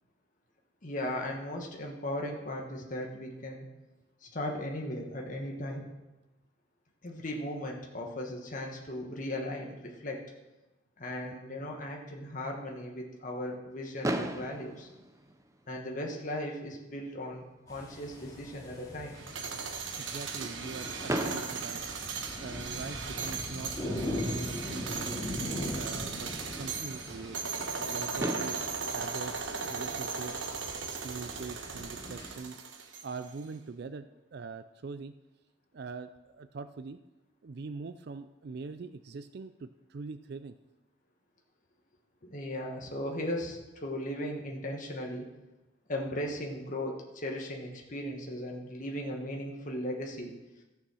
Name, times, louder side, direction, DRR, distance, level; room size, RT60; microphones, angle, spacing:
voice 1, 0.8-3.7 4.2-5.9 7.0-10.3 11.0-14.9 15.7-19.1 42.2-45.3 45.9-50.3, left 1 dB, 40° left, 0 dB, 1.4 m, -37 dB
Fireworks, 14.0-16.1 16.9-17.0 17.2-17.4 17.7-17.8 21.1-22.9 24.6-24.7 27.7-27.8 28.2-30.5, right 1 dB, 15° right, 0.6 m, -37 dB
sound 1, 17.7-32.3, left 1 dB, 20° left, 2.3 m, -41 dB
sound 2, 19.2-33.3, right 5 dB, 70° right, 1.1 m, -37 dB
voice 2, 20.0-25.3 25.7-27.4 27.9-30.5 30.9-32.6 33.0-34.1 34.3-35.1 35.7-37.0 37.4-40.6, right 4 dB, 55° right, 11 dB, 0.4 m, -43 dB
13.5 x 7.1 x 6.2 m, 1.1 s
head